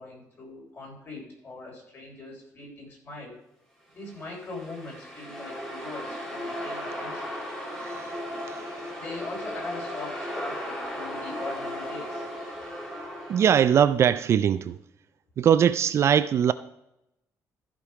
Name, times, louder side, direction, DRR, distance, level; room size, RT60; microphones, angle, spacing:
voice 1, 0.0-3.4 3.9-7.3 9.0-12.3, left 3 dB, 35° left, 4.2 m, -41 dB
sound 1, 4.0-13.9, equal, 10° left, 2.3 m, -36 dB
voice 2, 13.3-14.7 15.4-16.5, right 8 dB, 45° right, 0.4 m, -20 dB
14.0 x 5.3 x 4.8 m
cardioid pair, 145°, 6 cm